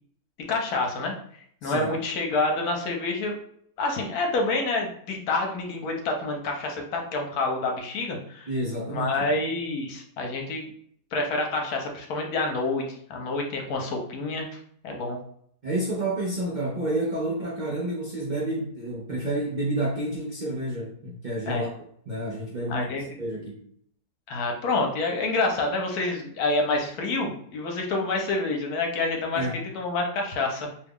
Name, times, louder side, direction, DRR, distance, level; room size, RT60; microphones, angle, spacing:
voice 1, 0.5-1.1 1.6-3.3 3.8-8.5 8.9-10.7 11.1-14.5 14.8-15.2 21.5-21.7 22.7-23.0 24.3-29.5 29.7-30.7, left 2 dB, 75° left, 2 dB, 1.2 m, -27 dB
voice 2, 1.6-1.9 8.5-9.3 15.6-21.7 22.1-22.9 23.2-23.6 29.3-29.6, right 1 dB, 80° right, -3 dB, 0.4 m, -29 dB
2.9 x 2.3 x 3.5 m, 0.66 s
omnidirectional pair, 1.7 m